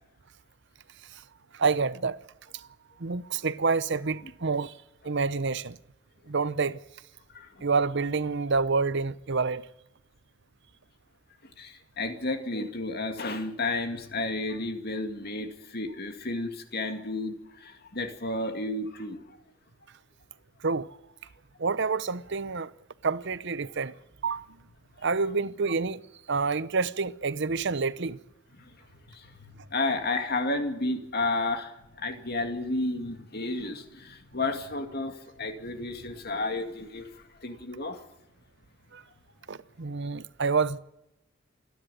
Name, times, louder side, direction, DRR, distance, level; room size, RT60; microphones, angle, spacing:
voice 1, 1.5-2.2 2.5-2.7 3.0-4.7 5.0-5.8 6.3-6.8 7.6-9.7 20.6-20.9 21.6-22.7 23.0-23.9 24.2-24.5 25.0-26.0 26.3-28.2 38.9-39.0 39.5-40.8, right 4 dB, 55° right, 0.8 m, -28 dB
voice 2, 11.6-19.4 28.6-28.8 29.1-37.1 37.4-38.0, left 2 dB, 45° left, 2.3 m, -32 dB
28.0 x 10.5 x 9.4 m
head